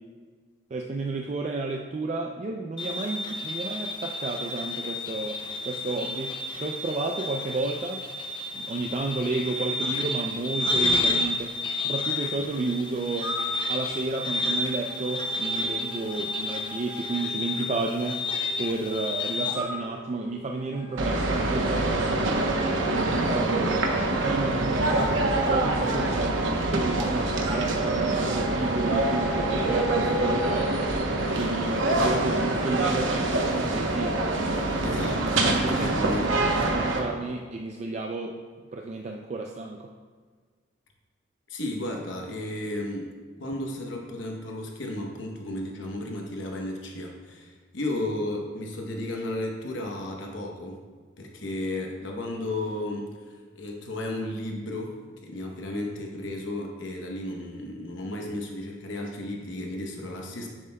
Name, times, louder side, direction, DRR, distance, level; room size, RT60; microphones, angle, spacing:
voice 1, 0.7-8.0 8.5-13.3 13.7-18.2 18.6-22.5 22.9-23.9 24.2-30.7 31.3-34.2 34.8-38.4 38.7-39.9, right 3 dB, 35° right, 2 dB, 0.3 m, -32 dB
sound 1, 2.8-19.5, left 2 dB, 25° left, 0.6 m, -31 dB
sound 2, 13.2-18.7 19.5-23.9 24.8-27.1 27.4-30.6, right 1 dB, 15° right, 0.8 m, -39 dB
sound 3, 21.0-37.0, right 2 dB, 80° right, 0.9 m, -25 dB
voice 2, 34.8-36.6 41.5-43.1 43.4-50.8 51.2-55.0 55.2-60.5, left 1 dB, 75° left, 0 dB, 0.9 m, -34 dB
10.0 x 7.0 x 2.2 m, 1.5 s
head